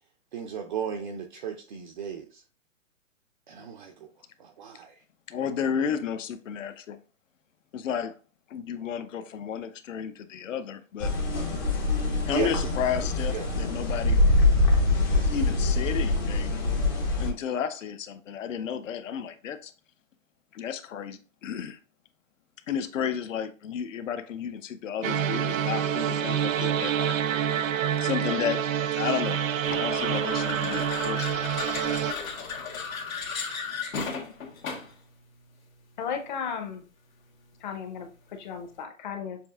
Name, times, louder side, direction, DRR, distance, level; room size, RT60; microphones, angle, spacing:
voice 1, 0.3-2.4 3.5-4.1 4.4-4.9 12.3-12.5 13.3-13.5, right 7 dB, 40° right, 0.4 m, -35 dB
voice 2, 5.3-7.0 7.7-8.1 8.5-11.1 12.3-14.2 15.2-16.6 17.2-19.7 20.5-21.8 22.7-27.2 28.0-28.7 28.9-29.4 29.7-31.4, left 8 dB, 70° left, 0.7 m, -32 dB
sound 1, 11.0-17.3, left 2 dB, 15° left, 0.5 m, -24 dB
sound 2, 25.0-32.1, right 9 dB, 75° right, 0.7 m, -27 dB
sound 3, 29.6-35.0, left 5 dB, 85° left, 1.5 m, -35 dB
voice 3, 36.0-36.8 37.6-39.4, left 7 dB, 35° left, 0.8 m, -35 dB
6.8 x 2.7 x 2.4 m
hypercardioid pair, 150°, 40 cm